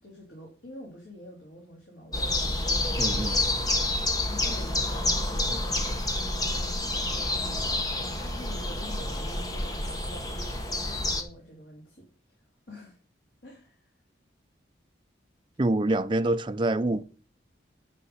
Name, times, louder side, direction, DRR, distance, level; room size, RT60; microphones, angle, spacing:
voice 1, 0.0-3.2 3.5-12.3 12.7-13.0 13.4-13.8, equal, 75° left, 3.4 m, -46 dB
sound 1, 2.1-11.2, left 2 dB, 20° left, 1.1 m, -28 dB
voice 2, 3.0-3.4 15.6-17.0, right 1 dB, 25° right, 0.5 m, -26 dB
9.7 x 5.8 x 5.7 m
head